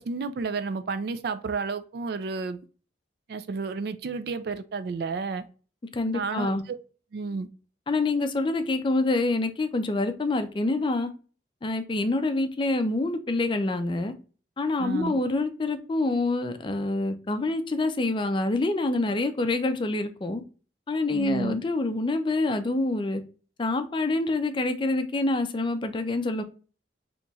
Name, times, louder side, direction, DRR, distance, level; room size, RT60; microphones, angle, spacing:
voice 1, 0.0-2.6 3.3-5.4 6.1-6.8 7.1-7.5 14.8-15.2 21.1-21.6, right 4 dB, 60° right, 0.3 m, -31 dB
voice 2, 5.9-6.6 7.9-11.1 11.6-14.1 14.6-20.4 20.9-23.2 23.6-26.4, left 2 dB, 25° left, 0.4 m, -26 dB
4.0 x 2.9 x 2.3 m
head